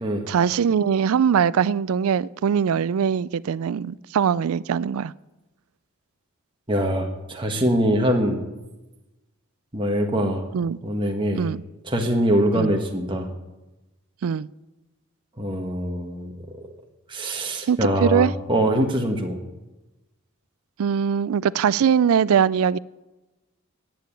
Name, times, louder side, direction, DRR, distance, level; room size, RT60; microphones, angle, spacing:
voice 1, 0.3-5.1 10.5-10.8 11.4-11.6 12.5-12.8 14.2-14.5 17.7-18.3 20.8-22.8, right 7 dB, 75° right, 21 dB, 0.4 m, -21 dB
voice 2, 6.7-8.4 9.7-10.4 10.8-11.5 11.9-13.3 15.4-16.3 17.1-19.4, equal, 20° right, 2 dB, 1.3 m, -23 dB
10.5 x 9.0 x 8.6 m, 1.1 s
head